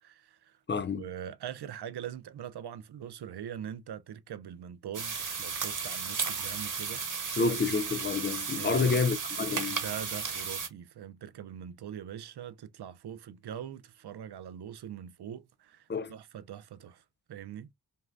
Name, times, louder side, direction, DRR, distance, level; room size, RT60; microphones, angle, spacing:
voice 1, 0.0-0.6 0.9-7.5 8.5-9.0 9.7-17.0 17.3-17.7, right 9 dB, 80° right, 0.6 m, -42 dB
voice 2, 0.7-1.0 7.4-9.8 15.9-16.1, left 4 dB, 30° left, 0.6 m, -29 dB
sound 1, 4.9-10.7, right 5 dB, 50° right, 1.2 m, -34 dB
5.3 x 2.2 x 2.5 m
cardioid pair, 50°, 39 cm